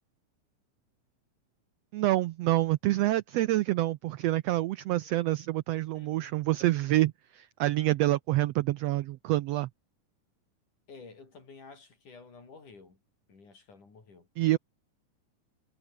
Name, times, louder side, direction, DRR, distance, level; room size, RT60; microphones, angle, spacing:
voice 1, 1.9-9.7 14.4-14.6, right 16 dB, 85° right, 1.4 m, -27 dB
voice 2, 5.9-6.4 10.9-13.0 13.3-14.3, left 4 dB, 75° left, 7.8 m, -51 dB
omnidirectional pair, 3.6 m